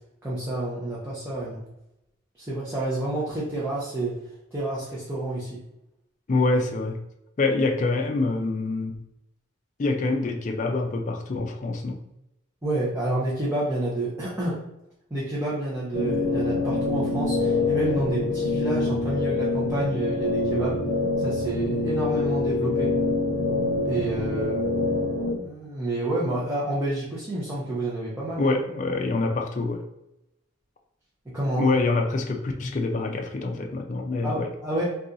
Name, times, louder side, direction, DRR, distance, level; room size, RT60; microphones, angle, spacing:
voice 1, 0.2-1.6 2.4-4.2 4.5-5.6 12.6-14.6 15.1-20.8 21.2-23.0 23.8-24.6 25.3-28.5 31.3-31.7 34.2-34.9, right 1 dB, 10° right, -8 dB, 0.6 m, -29 dB
voice 2, 6.3-7.0 7.4-9.0 9.8-12.1 28.4-29.8 31.6-34.5, left 3 dB, 35° left, 3 dB, 0.3 m, -25 dB
sound 1, 15.9-25.4, left 2 dB, 70° left, 0.6 m, -25 dB
2.7 x 2.3 x 3.7 m, 0.87 s
head